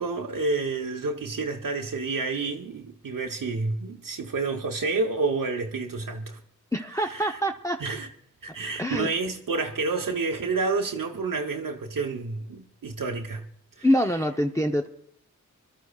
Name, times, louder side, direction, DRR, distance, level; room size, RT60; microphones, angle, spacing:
voice 1, 0.0-6.4 7.0-7.4 7.8-8.1 8.4-13.5 13.8-13.9, right 3 dB, 75° right, 1.0 m, -29 dB
voice 2, 6.7-7.8 8.8-9.1 13.8-14.9, equal, 10° left, 0.7 m, -25 dB
24.5 x 12.5 x 2.4 m
cardioid pair, 40°, 33 cm